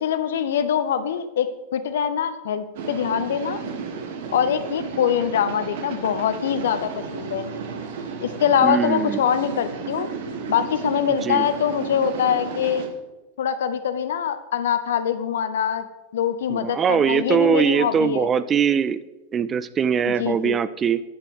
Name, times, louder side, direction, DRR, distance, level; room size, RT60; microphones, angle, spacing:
voice 1, 0.0-3.6 4.3-7.5 8.2-10.1 10.5-12.9 13.4-15.9 16.1-18.3 20.1-20.6, left 8 dB, 60° left, 12 dB, 0.6 m, -23 dB
sound 1, 2.8-12.9, right 5 dB, 55° right, 1.1 m, -33 dB
voice 2, 8.6-9.2 11.2-11.4 16.5-19.0 19.3-21.0, right 7 dB, 25° right, 15 dB, 0.3 m, -21 dB
9.5 x 8.2 x 3.5 m, 1.1 s
figure-of-eight pair, 90°, 0 cm